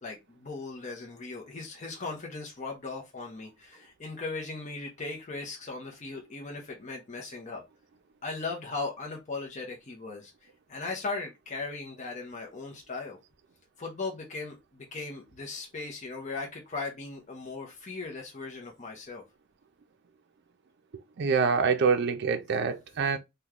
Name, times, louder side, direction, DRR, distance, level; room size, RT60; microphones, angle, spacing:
voice 1, 0.0-7.6 8.2-13.2 13.8-19.2, left 3 dB, 35° left, 0.7 m, -38 dB
voice 2, 21.2-23.2, right 5 dB, 55° right, 0.4 m, -25 dB
3.0 x 2.2 x 3.6 m
head